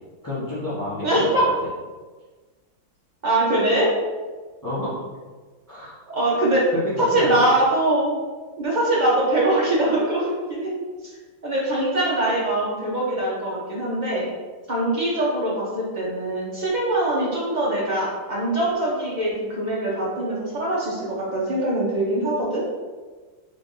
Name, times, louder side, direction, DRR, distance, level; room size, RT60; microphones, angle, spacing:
voice 1, 0.2-1.3 4.6-5.0 5.7-5.9 6.7-7.4, left 1 dB, 15° left, -11 dB, 0.8 m, -29 dB
voice 2, 1.0-1.4 3.2-3.9 6.1-6.6 7.0-8.1 8.6-10.7 11.4-14.3 14.7-22.6, right 1 dB, 50° right, -6 dB, 0.5 m, -22 dB
4.4 x 3.4 x 2.6 m, 1.3 s
omnidirectional pair, 2.0 m